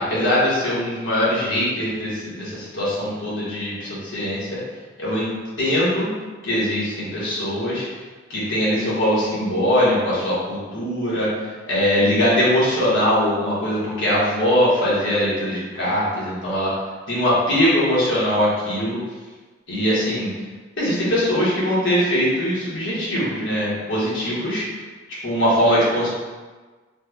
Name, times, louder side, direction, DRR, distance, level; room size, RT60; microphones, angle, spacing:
voice 1, 0.0-4.6 5.0-5.3 5.6-6.1 6.4-7.9 8.3-11.3 11.7-16.7 17.1-19.0 19.7-20.3 20.8-24.6 25.2-26.1, equal, 90° left, -8 dB, 1.3 m, -21 dB
3.3 x 2.3 x 3.3 m, 1.3 s
head